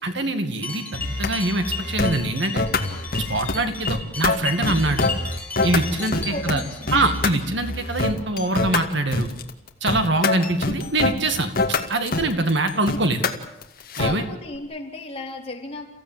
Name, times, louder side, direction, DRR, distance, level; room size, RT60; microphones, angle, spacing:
voice 1, 0.0-2.6 3.3-5.1 5.6-6.6 6.9-9.3 9.8-11.5 11.9-13.3 14.0-14.2, right 2 dB, 60° right, 8 dB, 2.2 m, -24 dB
sound 1, 0.6-8.0 8.3-8.8 9.1-9.4 10.0-10.1 10.8-10.9 11.6-11.7 12.4-12.5, left 4 dB, 10° left, 3.6 m, -35 dB
sound 2, 1.0-1.3 1.6-2.2 2.6-3.5 3.9-6.5 6.9-7.3 7.6-14.2, left 3 dB, 45° left, 2.2 m, -25 dB
voice 2, 6.0-7.0 14.0-15.9, left 2 dB, 30° left, 0 dB, 4.1 m, -34 dB
30.0 x 16.0 x 9.1 m, 0.88 s
head